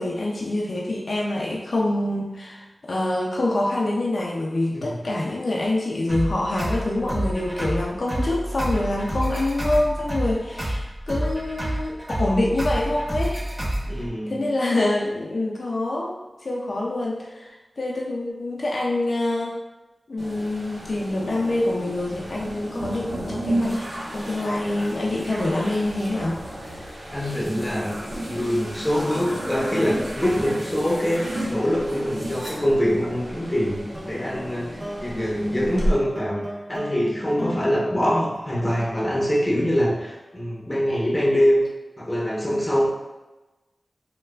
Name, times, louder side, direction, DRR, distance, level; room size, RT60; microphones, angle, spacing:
voice 1, 0.0-13.4 14.3-16.1 16.4-17.5 17.8-19.6 20.1-23.8 24.1-26.4 35.2-35.5, left 1 dB, 70° left, -3 dB, 0.3 m, -25 dB
sound 1, 6.1-14.1, right 1 dB, 40° right, 0.9 m, -28 dB
voice 2, 13.9-14.4 27.1-27.9 28.3-33.8 34.0-36.4 36.7-41.6 42.0-42.9, equal, 15° left, -4 dB, 0.8 m, -24 dB
sound 2, 20.2-35.9, equal, 75° right, 0.7 m, -32 dB
sound 3, 33.9-40.4, equal, 20° right, 0.4 m, -38 dB
3.1 x 2.1 x 2.2 m, 1.1 s
wide cardioid pair, 50°, 0 cm